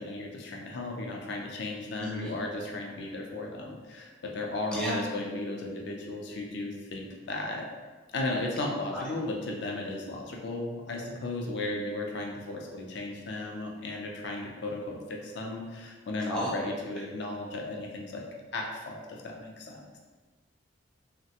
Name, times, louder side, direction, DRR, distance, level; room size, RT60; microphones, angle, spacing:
voice 1, 0.0-7.7 8.1-18.2 18.5-20.0, left 2 dB, 60° left, 0 dB, 0.4 m, -35 dB
voice 2, 2.0-2.3 4.7-5.0 8.9-9.0 16.3-16.5, equal, 5° left, -6 dB, 0.5 m, -32 dB
3.1 x 2.1 x 2.7 m, 1.3 s
head